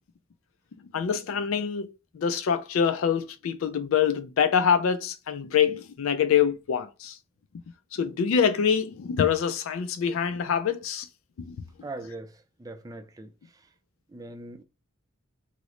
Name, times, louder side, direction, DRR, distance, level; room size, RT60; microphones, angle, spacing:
voice 1, 0.9-7.1 7.9-11.1 11.4-11.6, left 7 dB, 80° left, 0.4 m, -25 dB
voice 2, 11.8-13.3 14.1-14.6, right 2 dB, 20° right, 0.3 m, -40 dB
3.0 x 2.0 x 3.7 m
head